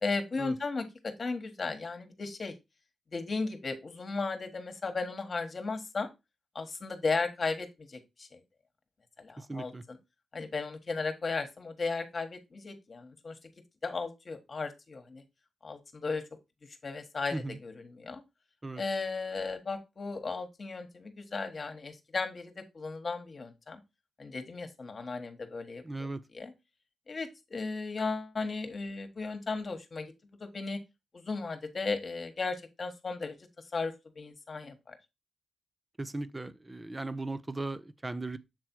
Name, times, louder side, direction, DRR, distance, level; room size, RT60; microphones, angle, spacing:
voice 1, 0.0-2.5 3.1-6.1 6.5-8.4 9.2-10.0 10.3-13.4 13.8-15.2 15.6-16.2 16.8-18.2 18.8-23.8 24.2-25.8 26.3-26.5 27.1-30.1 30.4-30.8 31.1-33.4 33.7-34.9, left 4 dB, 45° left, 1.3 m, -35 dB
voice 2, 9.4-9.8 17.3-17.6 18.6-18.8 25.8-26.2 36.0-38.4, right 2 dB, 20° right, 0.7 m, -37 dB
7.5 x 3.4 x 4.4 m
cardioid pair, 60°, 0 cm